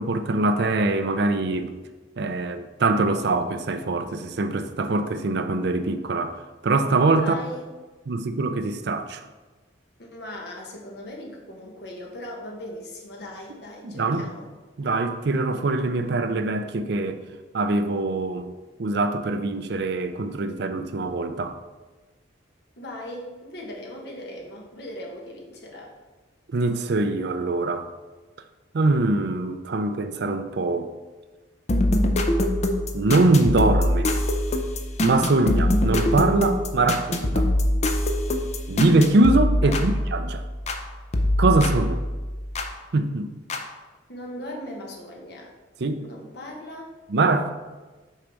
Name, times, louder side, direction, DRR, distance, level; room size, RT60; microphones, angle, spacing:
voice 1, 0.0-1.7 2.2-7.3 8.1-9.2 13.8-14.3 14.8-17.2 17.5-18.5 18.8-21.6 26.5-27.9 28.7-30.9 32.9-34.1 35.0-37.5 38.7-40.5 41.4-42.0 42.9-43.3 45.8-46.0 47.1-47.5, right 2 dB, 60° right, 9 dB, 0.5 m, -23 dB
voice 2, 7.2-7.7 10.0-14.5 22.8-25.9 39.6-40.0 44.1-45.5 46.0-46.9, left 1 dB, 60° left, -1 dB, 1.3 m, -38 dB
sound 1, 31.7-40.8 41.1-42.7 43.5-43.6, left 1 dB, 35° left, 0.5 m, -23 dB
6.6 x 3.9 x 4.7 m, 1.2 s
head